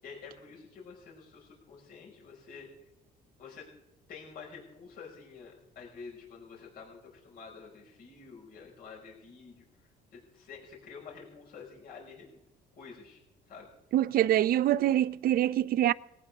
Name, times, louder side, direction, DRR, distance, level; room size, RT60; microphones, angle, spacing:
voice 1, 0.0-2.7 3.4-3.7 4.1-9.6 10.1-12.4 12.8-13.2 13.5-13.7, left 5 dB, 60° left, 5.6 m, -48 dB
voice 2, 13.9-15.9, right 12 dB, 60° right, 0.6 m, -25 dB
19.5 x 18.5 x 3.6 m
cardioid pair, 110°, 17 cm